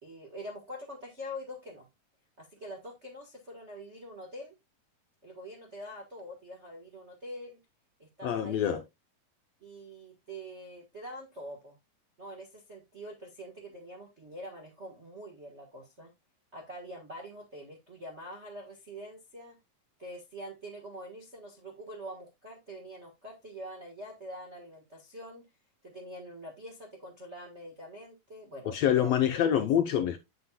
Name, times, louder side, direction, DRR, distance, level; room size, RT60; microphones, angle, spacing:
voice 1, 0.0-1.9 2.4-4.6 5.2-7.6 8.0-8.8 9.6-11.8 12.2-16.1 16.5-19.6 20.0-25.5 25.8-29.4, equal, 40° right, 1.0 m, -45 dB
voice 2, 8.2-8.8 28.7-30.2, left 10 dB, 75° left, 1.6 m, -26 dB
8.4 x 7.7 x 2.3 m
omnidirectional pair, 3.5 m